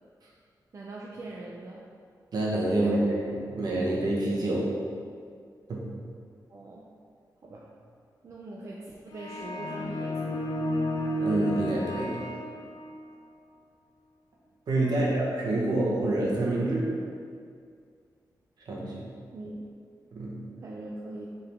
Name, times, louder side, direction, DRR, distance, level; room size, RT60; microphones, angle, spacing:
voice 1, 0.7-1.8 2.8-3.1 6.5-6.8 7.4-7.6 8.2-10.4 14.8-15.2 19.3-19.7 20.6-21.3, right 2 dB, 45° right, -4 dB, 0.5 m, -41 dB
voice 2, 2.3-4.7 5.7-5.9 11.2-12.2 14.7-16.9 18.7-19.1 20.1-20.4, right 1 dB, 65° right, -5 dB, 1.3 m, -27 dB
sound 1, 9.1-13.1, equal, 75° left, 0.5 m, -32 dB
6.8 x 3.9 x 3.5 m, 2.2 s
wide cardioid pair, 155°, 7 cm